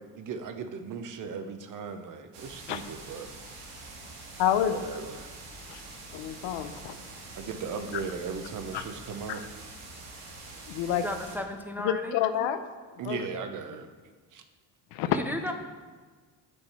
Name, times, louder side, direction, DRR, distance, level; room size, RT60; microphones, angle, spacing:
voice 1, 0.2-3.3 4.6-5.3 7.3-9.4 13.0-13.9 14.3-14.4, right 5 dB, 45° right, 8 dB, 0.7 m, -37 dB
sound 1, 2.3-11.4, right 2 dB, 85° right, 1.9 m, -45 dB
voice 2, 4.4-4.8 5.7-5.8 6.1-6.9 8.7-8.8 9.3-9.4 10.7-11.0 11.8-12.6 13.0-13.2 14.9-15.2, left 10 dB, 85° left, 10 dB, 0.7 m, -28 dB
voice 3, 10.9-12.2 15.1-15.5, left 1 dB, 5° right, 4 dB, 0.4 m, -34 dB
7.9 x 6.3 x 4.3 m, 1.4 s
cardioid pair, 125°, 42 cm